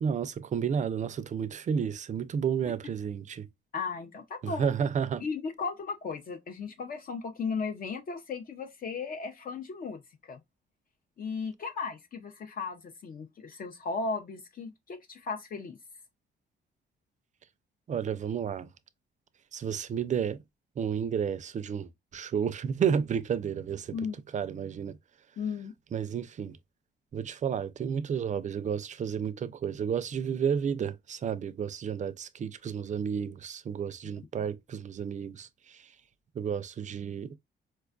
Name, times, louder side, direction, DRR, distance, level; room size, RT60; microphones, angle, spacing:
voice 1, 0.0-3.5 4.4-5.2 17.9-18.7 19.5-20.4 20.8-24.0 24.3-25.0 25.9-26.6 27.1-35.8 36.4-37.3, right 7 dB, 40° right, 0.4 m, -31 dB
voice 2, 3.7-4.7 5.2-10.4 11.2-15.8 23.9-24.1 25.4-25.7, left 5 dB, 45° left, 0.5 m, -36 dB
4.3 x 2.3 x 2.3 m
cardioid pair, 90°, 20 cm